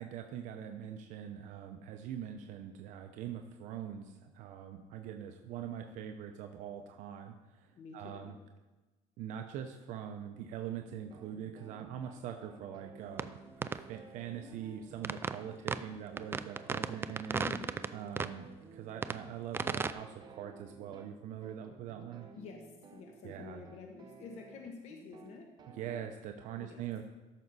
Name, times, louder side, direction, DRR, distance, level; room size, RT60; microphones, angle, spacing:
voice 1, 0.0-8.4 9.2-17.5 17.9-22.3 23.2-23.6 25.7-27.0, right 9 dB, 70° right, 5 dB, 0.7 m, -43 dB
voice 2, 7.7-8.4 17.3-17.7 22.4-25.5 26.6-26.8, left 5 dB, 55° left, 2 dB, 1.1 m, -48 dB
sound 1, 11.1-26.1, right 4 dB, 35° right, 0.9 m, -55 dB
sound 2, 13.2-13.3 13.6-13.8 15.0-15.4 15.7-15.8 16.2-17.9 18.2-18.3 19.0-19.2 19.5-19.9, right 5 dB, 20° right, 0.3 m, -34 dB
13.5 x 6.2 x 4.1 m, 1.2 s
cardioid pair, 135°, 13 cm